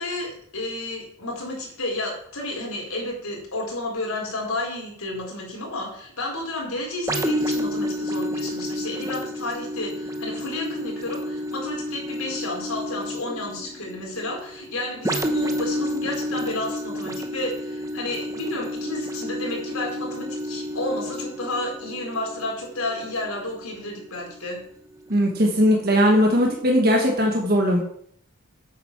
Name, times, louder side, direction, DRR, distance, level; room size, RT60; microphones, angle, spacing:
voice 1, 0.0-24.6, left 2 dB, 90° left, -1 dB, 4.4 m, -31 dB
sound 1, 7.1-24.6 25.1-25.3, equal, 15° right, 0.9 m, -30 dB
voice 2, 25.1-27.8, equal, 45° right, 0 dB, 1.6 m, -19 dB
9.3 x 8.0 x 6.0 m, 0.67 s
head